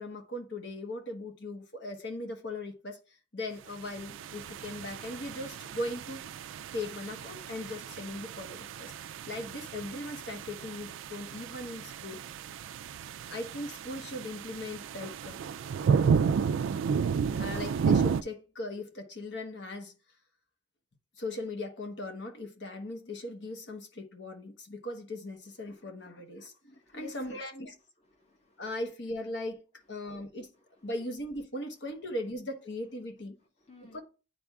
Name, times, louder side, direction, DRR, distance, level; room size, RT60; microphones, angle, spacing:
voice 1, 0.0-6.2 6.7-8.9 9.2-12.2 13.3-15.5 17.2-19.9 21.2-27.7 28.6-30.5 30.8-33.4 33.9-34.0, left 1 dB, 65° left, 1.2 m, -39 dB
sound 1, 3.9-18.2, right 6 dB, 85° right, 0.3 m, -32 dB
voice 2, 25.6-26.1 26.7-27.4 27.7-28.9 29.7-30.1 30.5-31.1 32.8-32.9 33.4-34.0, left 5 dB, 35° left, 1.4 m, -55 dB
9.9 x 4.3 x 2.3 m
head